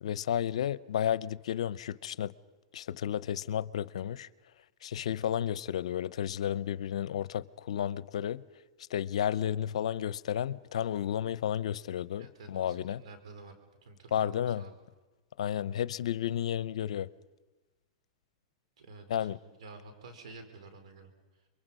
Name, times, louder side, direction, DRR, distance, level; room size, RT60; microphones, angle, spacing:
voice 1, 0.0-2.3 2.7-4.3 4.8-8.4 8.9-13.0 14.1-14.6 15.4-17.1 19.1-19.4, left 10 dB, 80° left, 0.7 m, -32 dB
voice 2, 12.2-13.5 13.8-14.8 15.5-15.7 18.8-21.5, right 3 dB, 80° right, 4.3 m, -51 dB
28.5 x 23.0 x 5.5 m
hypercardioid pair, 130°, 3 cm